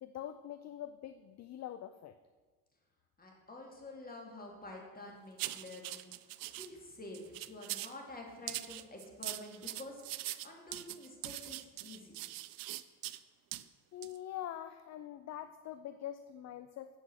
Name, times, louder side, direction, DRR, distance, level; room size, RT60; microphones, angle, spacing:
voice 1, 0.0-2.2 13.9-17.0, left 11 dB, 40° left, 11 dB, 0.5 m, -44 dB
voice 2, 3.2-12.3, left 2 dB, 20° left, 0 dB, 2.6 m, -49 dB
sound 1, 5.4-6.7 7.1-8.0 8.5-13.2 13.5-13.6 14.0-14.2, right 16 dB, 55° right, 0.5 m, -42 dB
8.1 x 5.6 x 6.3 m, 1.4 s
hypercardioid pair, 55°, 43 cm